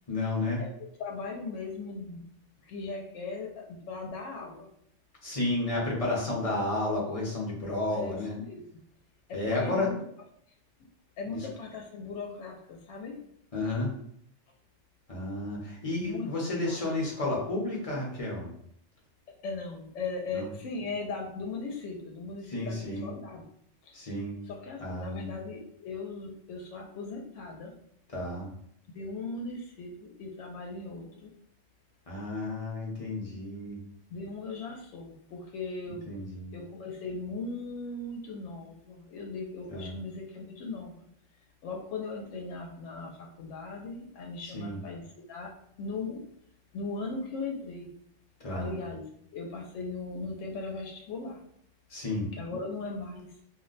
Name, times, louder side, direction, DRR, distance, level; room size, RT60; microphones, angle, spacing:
voice 1, 0.1-0.6 5.2-8.3 9.3-9.9 11.3-11.5 13.5-13.9 15.1-18.5 20.3-20.5 22.5-23.1 23.9-24.4 24.8-25.3 28.1-28.5 32.1-33.8 35.9-36.5 39.7-40.0 44.4-44.8 48.4-48.7 51.9-52.3, left 2 dB, 35° left, -3 dB, 0.8 m, -32 dB
voice 2, 1.0-2.2 2.6-4.7 7.9-8.2 8.5-8.6 9.3-9.9 11.2-13.2 16.0-16.3 16.6-16.8 19.4-23.4 23.8-24.1 24.5-27.7 28.9-31.3 34.1-36.1 36.5-41.0 41.6-45.0 45.3-45.5 45.8-46.2 46.7-47.9 48.5-49.0 49.3-51.4 52.3-53.3, left 3 dB, 85° left, 1 dB, 0.9 m, -38 dB
2.5 x 2.1 x 3.8 m, 0.67 s
omnidirectional pair, 1.2 m